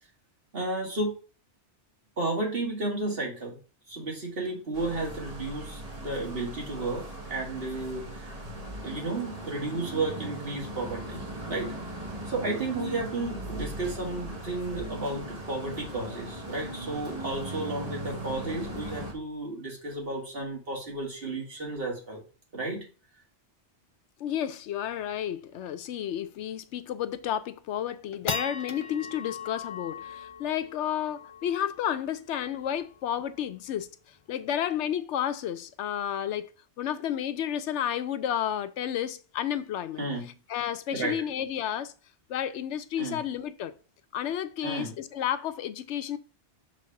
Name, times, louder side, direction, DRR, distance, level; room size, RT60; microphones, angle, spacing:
voice 1, 0.5-1.2 2.2-3.6 3.9-8.4 8.8-11.7 12.3-22.2 22.5-22.8 40.0-40.3 40.9-41.2 43.0-43.2 44.6-45.0, right 2 dB, 55° right, 2.2 m, -33 dB
sound 1, 4.7-19.1, right 1 dB, 35° right, 1.6 m, -38 dB
voice 2, 24.2-33.9 34.3-36.5 36.8-40.0 40.5-41.9 42.3-43.7 44.1-46.2, left 10 dB, 85° left, 0.9 m, -31 dB
sound 2, 24.8-24.9 25.1-25.2 25.6-25.9 26.3-26.4 27.0-27.4 27.8-34.4, left 5 dB, 40° left, 0.4 m, -40 dB
6.2 x 3.4 x 5.7 m
omnidirectional pair, 1.2 m